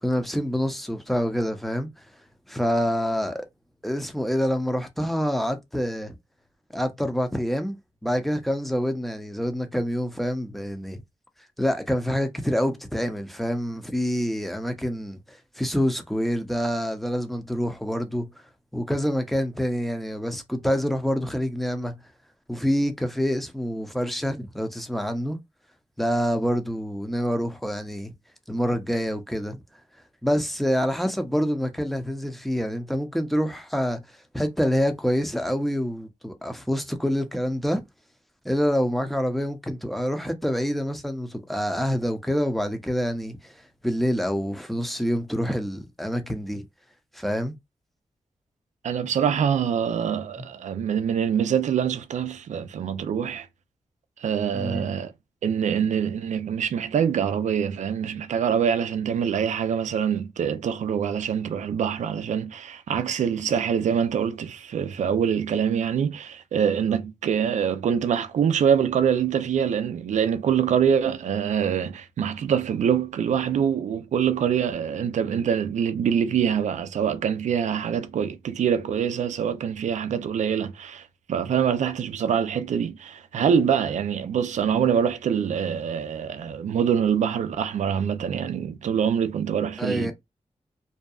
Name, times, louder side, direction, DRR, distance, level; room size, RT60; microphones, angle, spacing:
voice 1, 0.0-1.9 2.5-3.5 3.8-6.2 6.7-7.7 8.0-11.0 11.6-18.3 18.7-22.0 22.5-25.4 26.0-28.1 28.5-29.6 30.2-34.0 34.3-37.8 38.4-43.5 43.8-46.6 47.1-47.6 54.5-54.9 89.8-90.1, equal, ahead, 0.6 m, -26 dB
voice 2, 48.8-53.5 54.2-55.1 55.4-90.1, right 8 dB, 90° right, 0.4 m, -25 dB
2.7 x 2.2 x 2.3 m
cardioid pair, 55°, 12 cm